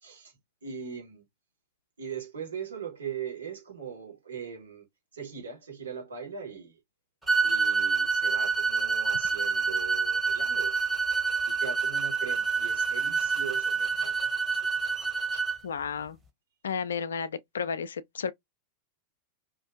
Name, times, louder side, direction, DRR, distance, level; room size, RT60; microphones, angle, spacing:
voice 1, 0.0-1.2 2.0-4.8 5.1-6.8 7.4-10.7 11.5-14.3, right 7 dB, 70° right, 1.4 m, -40 dB
sound 1, 7.3-15.6, right 5 dB, 5° right, 1.0 m, -27 dB
voice 2, 15.3-16.2 16.6-18.3, left 6 dB, 65° left, 0.3 m, -33 dB
2.5 x 2.4 x 2.5 m
figure-of-eight pair, 90°, 0 cm